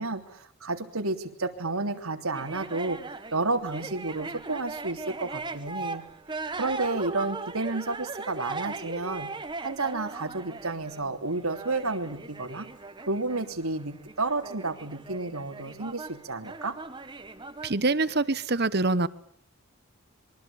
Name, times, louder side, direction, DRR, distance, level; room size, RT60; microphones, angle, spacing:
voice 1, 0.0-6.0 6.5-9.3 9.6-12.7 13.1-16.8, right 3 dB, 90° right, 6 dB, 3.2 m, -31 dB
sound 1, 2.3-17.7, right 3 dB, 20° right, 1.5 m, -39 dB
voice 2, 17.6-19.1, right 3 dB, 50° right, 15 dB, 1.2 m, -25 dB
26.5 x 23.5 x 8.8 m, 0.64 s
head